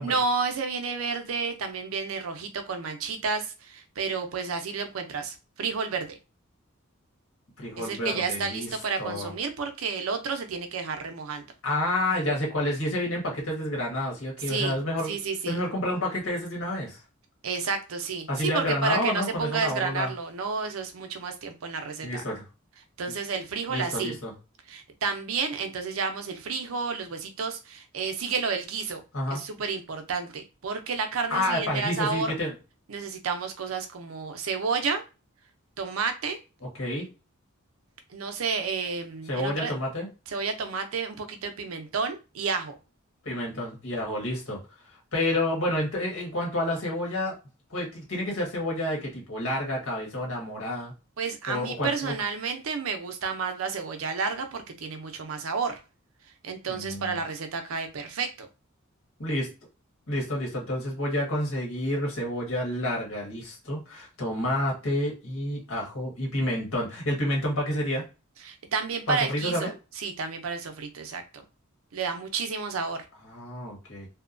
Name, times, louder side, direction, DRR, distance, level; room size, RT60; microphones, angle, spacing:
voice 1, 0.0-6.2 7.8-11.4 14.5-14.8 15.1-15.6 17.4-22.2 23.0-24.2 24.7-29.0 29.3-32.3 32.9-35.0 35.8-36.4 38.1-39.7 40.3-42.7 51.2-55.8 56.4-58.5 68.4-69.6 70.0-71.2 71.9-73.0, right 5 dB, 85° right, 6 dB, 0.5 m, -31 dB
voice 2, 7.6-8.7 9.0-9.3 11.6-15.2 15.5-17.0 18.3-20.1 22.0-22.4 23.7-24.3 29.1-29.4 31.3-32.5 36.6-37.1 39.3-40.1 43.2-44.6 45.1-47.4 47.7-50.9 51.5-52.1 56.7-57.2 59.2-59.5 60.1-68.0 69.1-69.7 73.3-74.1, left 1 dB, 75° left, -1 dB, 1.3 m, -29 dB
2.7 x 2.2 x 2.5 m, 0.30 s
head